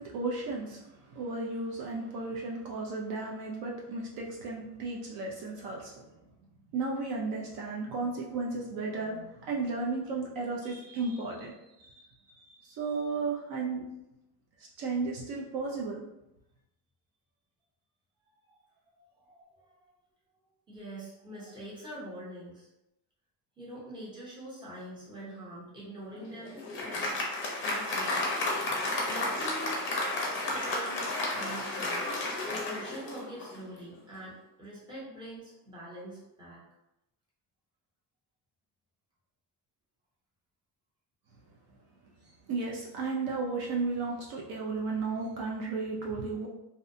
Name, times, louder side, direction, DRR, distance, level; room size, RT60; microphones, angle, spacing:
voice 1, 0.0-5.9 6.7-11.5 11.8-12.1 12.4-13.8 14.8-16.0 42.5-46.5, right 3 dB, 60° right, -2 dB, 0.5 m, -34 dB
voice 2, 18.9-19.9 20.7-22.7 23.6-27.3 27.6-28.3 29.0-29.8 30.5-32.1 32.5-36.6, right 1 dB, 10° right, -7 dB, 0.7 m, -45 dB
Applause, 26.1-33.7, left 2 dB, 30° left, 0.5 m, -32 dB
2.6 x 2.1 x 2.6 m, 0.89 s
cardioid pair, 170°, 40 cm